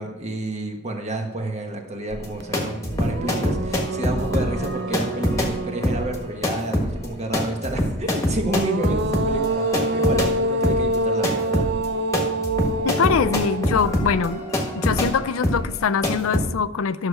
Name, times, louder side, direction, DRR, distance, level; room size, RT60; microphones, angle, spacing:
voice 1, 0.0-11.7, right 1 dB, 35° right, 1.3 m, -30 dB
sound 1, 2.1-10.3 10.6-16.5, left 1 dB, 15° left, 1.4 m, -25 dB
sound 2, 2.4-2.5 2.9-6.5 8.2-15.5, right 2 dB, 55° right, 0.6 m, -27 dB
voice 2, 12.8-14.5 14.7-17.1, left 6 dB, 85° left, 0.4 m, -23 dB
12.0 x 6.7 x 4.8 m
head